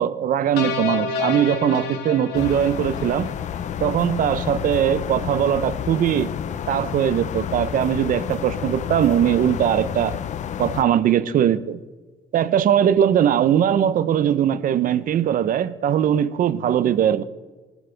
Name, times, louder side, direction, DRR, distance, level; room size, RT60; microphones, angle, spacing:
voice 1, 0.0-3.3 3.8-6.3 6.7-10.2 10.6-11.8 12.3-17.2, right 10 dB, 55° right, 14 dB, 0.7 m, -20 dB
sound 1, 0.6-3.9, left 5 dB, 80° left, 1.2 m, -29 dB
sound 2, 2.3-10.8, left 9 dB, 45° left, 0.6 m, -30 dB
19.0 x 12.0 x 3.5 m, 1.3 s
cardioid pair, 110°, 17 cm